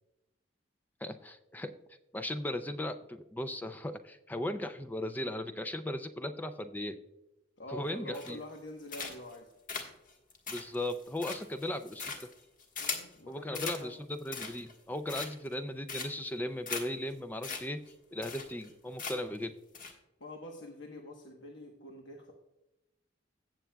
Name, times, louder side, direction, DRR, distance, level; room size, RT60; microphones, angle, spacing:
voice 1, 1.0-1.7 2.1-7.0 7.7-8.4 10.5-12.2 13.3-17.8 18.1-19.5, left 1 dB, 10° left, 8 dB, 0.4 m, -37 dB
voice 2, 7.6-9.5 12.8-14.0 15.1-15.3 20.2-22.3, left 1 dB, 70° left, 1 dB, 1.1 m, -46 dB
sound 1, 8.1-8.6 8.9-9.4 9.7-13.1 13.5-13.8 14.2-14.7 15.1-15.5 15.9-16.3 16.7-16.8 17.1-17.2 17.4-17.6 17.9-18.0 18.2-18.7 19.0-19.4 19.7-19.9, left 4 dB, 45° left, 1.4 m, -39 dB
16.5 x 7.4 x 2.3 m, 0.93 s
head